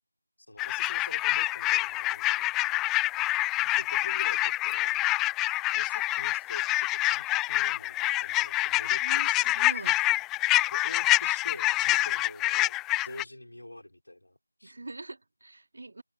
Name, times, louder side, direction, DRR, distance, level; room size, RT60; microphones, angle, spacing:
voice 1, 0.5-2.5 3.8-5.0 5.7-9.5 10.7-14.7, left 1 dB, 80° left, 5.9 m, -46 dB
sound 1, 0.6-13.2, left 18 dB, 5° left, 0.4 m, -26 dB
voice 2, 9.0-10.1 14.6-16.0, right 2 dB, 55° right, 2.8 m, -43 dB
figure-of-eight pair, 165°, 0 cm